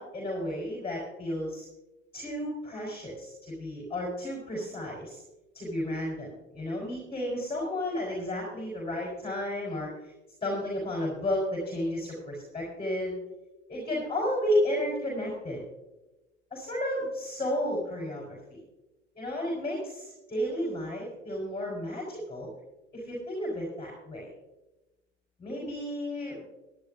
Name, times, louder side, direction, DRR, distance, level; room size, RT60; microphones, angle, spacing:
voice 1, 0.0-1.7 2.1-5.2 5.5-9.9 10.4-13.2 13.7-15.6 16.5-18.6 19.1-22.5 22.9-24.3 25.4-26.4, left 1 dB, 15° left, -3 dB, 5.1 m, -32 dB
22.5 x 11.0 x 2.7 m, 1.0 s
hypercardioid pair, 80°, 38 cm